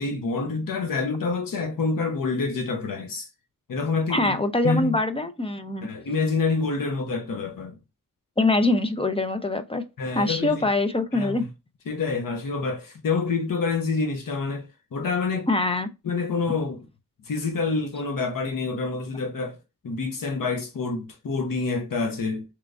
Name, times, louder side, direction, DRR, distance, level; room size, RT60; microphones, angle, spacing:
voice 1, 0.0-3.3 3.7-4.3 4.6-5.0 5.8-7.8 10.0-10.6 11.1-11.5 11.9-15.5 16.0-16.8 17.2-19.6 19.8-22.4, left 4 dB, 75° left, 0.9 m, -27 dB
voice 2, 4.1-5.9 8.4-9.8 10.1-11.5 15.5-15.9, left 2 dB, 15° left, 0.4 m, -23 dB
3.4 x 3.0 x 2.5 m
wide cardioid pair, 130°, 34 cm